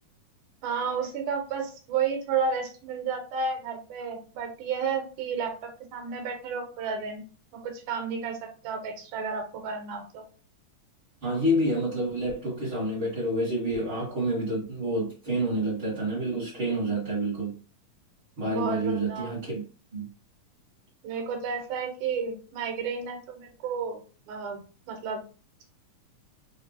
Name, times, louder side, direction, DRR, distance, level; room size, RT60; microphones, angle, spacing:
voice 1, 0.6-7.3 7.5-10.2 18.5-19.3 21.0-24.0 24.3-25.2, right 5 dB, 85° right, 2.3 m, -32 dB
voice 2, 11.2-17.6 18.4-19.6 19.9-20.1, right 1 dB, 45° right, 2.1 m, -28 dB
4.8 x 2.6 x 2.6 m
omnidirectional pair, 3.6 m